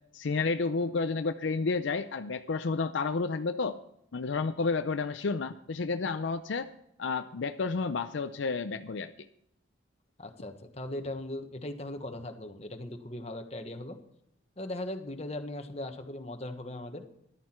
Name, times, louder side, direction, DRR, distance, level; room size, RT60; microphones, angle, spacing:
voice 1, 0.1-3.8 4.1-6.7 7.0-9.1, left 4 dB, 70° left, 9 dB, 0.5 m, -31 dB
voice 2, 10.2-14.0 14.6-17.1, left 1 dB, 30° left, 5 dB, 1.3 m, -39 dB
14.0 x 11.5 x 4.5 m, 0.77 s
head